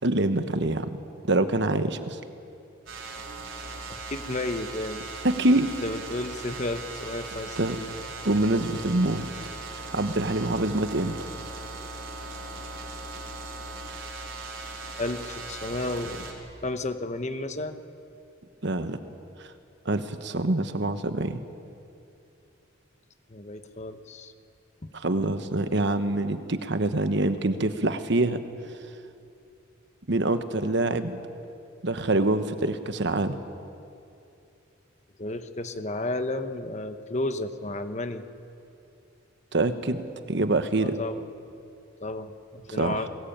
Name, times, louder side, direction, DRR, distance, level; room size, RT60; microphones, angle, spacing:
voice 1, 0.0-0.9 1.3-2.2 5.2-5.7 7.6-7.8 8.2-9.3 9.7-11.2 18.6-19.0 19.8-21.4 24.9-28.4 30.1-31.2 31.8-33.4 39.5-40.0 40.3-41.0 42.7-43.0, right 2 dB, 60° right, 9 dB, 1.2 m, -25 dB
sound 1, 2.9-16.3, right 3 dB, 80° right, 4.2 m, -39 dB
voice 2, 3.9-5.0 5.8-7.9 13.6-13.8 15.0-16.4 16.6-17.8 23.3-24.3 24.8-24.9 35.2-38.2 40.8-41.2 42.0-43.1, left 2 dB, 35° left, 9 dB, 1.1 m, -32 dB
22.0 x 20.0 x 8.8 m, 2.7 s
head